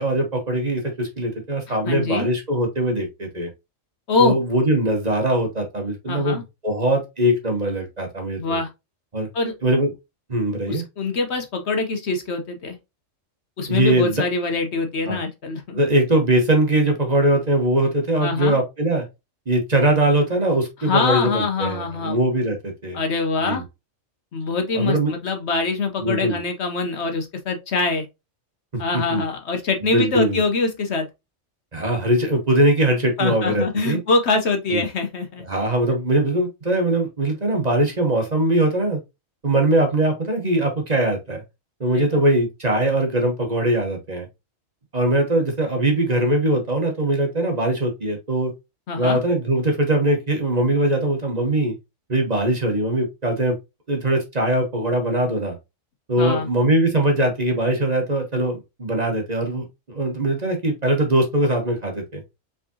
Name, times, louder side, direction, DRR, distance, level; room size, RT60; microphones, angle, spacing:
voice 1, 0.0-3.5 4.2-8.6 9.1-9.3 9.6-9.9 10.3-10.8 13.7-14.1 15.1-15.2 15.7-19.0 19.5-23.0 23.4-23.6 24.7-25.1 26.0-26.4 28.7-28.8 29.1-29.2 29.9-30.4 31.7-34.0 34.7-34.8 35.5-39.0 39.4-41.4 41.8-44.3 44.9-48.5 49.0-51.8 52.1-53.6 53.9-55.6 56.1-62.2, right 1 dB, 35° right, 1.2 m, -21 dB
voice 2, 1.8-2.3 4.1-4.4 6.1-6.4 8.4-8.7 9.3-9.5 10.7-12.8 13.6-15.8 18.2-18.6 20.8-22.2 22.9-23.6 24.3-28.1 28.8-31.1 33.2-35.4 42.0-42.2 48.9-49.2 56.2-56.5, left 3 dB, 60° left, 1.0 m, -24 dB
5.0 x 3.6 x 2.7 m
omnidirectional pair, 1.4 m